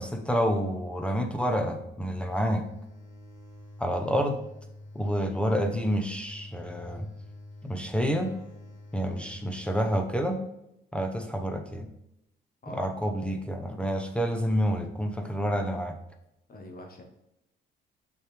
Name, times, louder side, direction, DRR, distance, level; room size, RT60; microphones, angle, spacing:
voice 1, 0.0-2.6 3.8-4.4 4.9-7.1 7.6-8.3 8.9-10.4 10.9-11.9 12.7-16.0, equal, 5° left, 3 dB, 0.7 m, -28 dB
sound 1, 2.1-9.7, left 1 dB, 75° left, 1.6 m, -47 dB
voice 2, 12.6-12.9 16.5-17.0, left 1 dB, 50° left, 3 dB, 1.1 m, -45 dB
6.3 x 4.7 x 3.3 m, 0.85 s
cardioid pair, 90°, 20 cm